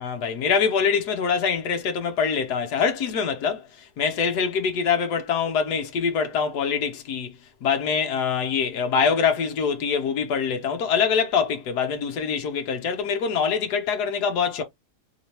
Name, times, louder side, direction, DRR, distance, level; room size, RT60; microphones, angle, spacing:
voice 1, 0.0-7.3 7.6-14.6, left 6 dB, 85° left, 1.5 m, -24 dB
3.4 x 3.3 x 2.8 m
omnidirectional pair, 1.7 m